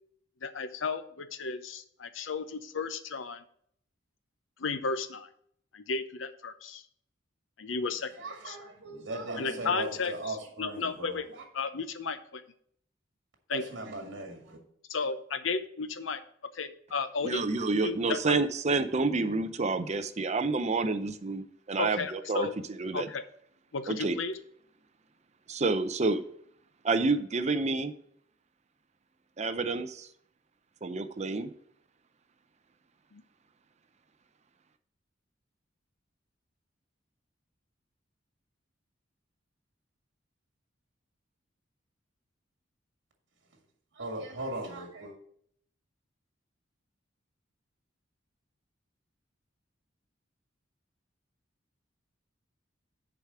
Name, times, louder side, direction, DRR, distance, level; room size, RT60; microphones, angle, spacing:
voice 1, 0.4-3.4 4.6-5.3 5.7-6.8 7.6-8.6 9.4-11.3 11.5-12.4 13.5-13.6 14.9-16.2 16.5-17.4 17.8-18.4 21.8-22.6 22.9-23.2 23.7-24.4 33.1-33.2, left 4 dB, 80° left, 0.7 m, -34 dB
voice 2, 8.2-11.2 13.5-14.6 44.0-45.2, right 2 dB, 65° right, 2.0 m, -38 dB
voice 3, 17.2-22.5 22.8-23.1 23.9-24.2 25.5-26.2 26.8-27.9 29.4-30.1 30.8-31.5, right 3 dB, 35° right, 0.6 m, -29 dB
7.0 x 4.8 x 6.8 m
head